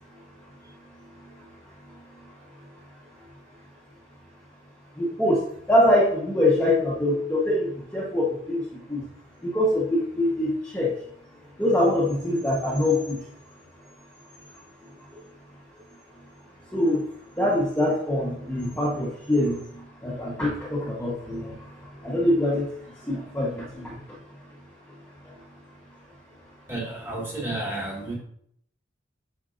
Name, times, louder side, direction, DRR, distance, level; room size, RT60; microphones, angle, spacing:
voice 1, 4.9-9.0 9.4-10.9 11.6-13.3 15.0-15.2 16.7-17.1 17.4-24.2 25.2-25.4, left 1 dB, 10° left, -7 dB, 1.0 m, -24 dB
voice 2, 26.7-28.2, right 2 dB, 10° right, -3 dB, 1.8 m, -31 dB
8.7 x 5.5 x 2.5 m, 0.69 s
head